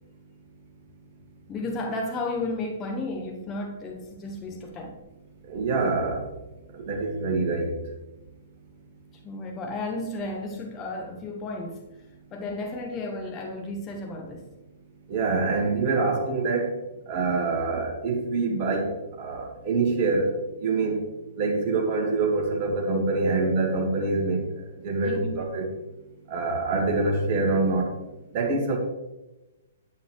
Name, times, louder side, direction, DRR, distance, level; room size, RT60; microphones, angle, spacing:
voice 1, 1.5-5.0 9.2-11.8 12.3-14.4 25.0-25.4, left 2 dB, 20° left, 1.0 m, -33 dB
voice 2, 5.5-6.3 6.7-7.7 15.1-16.7 17.1-18.9 19.2-20.3 20.6-21.0 21.4-24.4 24.8-25.6 26.3-27.9 28.3-28.8, right 3 dB, 35° right, 1.9 m, -25 dB
9.1 x 8.7 x 3.3 m
figure-of-eight pair, 115°, 0 cm